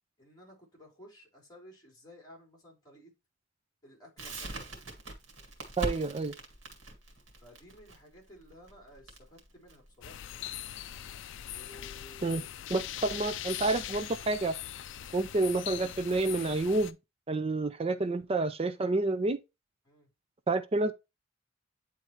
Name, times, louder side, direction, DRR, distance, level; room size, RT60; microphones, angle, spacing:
voice 1, 0.2-3.1 3.8-4.7 7.4-10.2 11.5-12.5 13.1-13.2 19.9-20.1, left 1 dB, 20° left, 3.4 m, -54 dB
Crackle, 4.2-11.0, right 1 dB, 85° right, 1.9 m, -42 dB
voice 2, 5.8-6.3 12.2-12.4 12.7-14.6 15.1-17.0 17.3-19.4 20.5-20.9, right 2 dB, 30° right, 0.5 m, -29 dB
sound 1, 10.0-16.9, left 11 dB, 65° left, 0.4 m, -41 dB
9.1 x 3.7 x 3.0 m
head